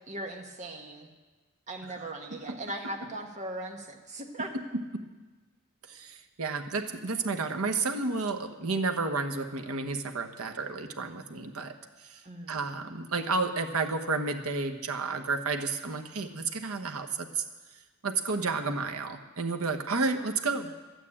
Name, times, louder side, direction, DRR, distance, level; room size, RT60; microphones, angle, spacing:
voice 1, 0.1-1.1 1.7-4.5 12.2-12.6, right 1 dB, 35° right, 2 dB, 1.4 m, -39 dB
voice 2, 5.9-11.7 12.0-17.4 18.0-20.7, right 3 dB, 75° right, 6 dB, 1.1 m, -31 dB
12.0 x 9.2 x 8.6 m, 1.3 s
head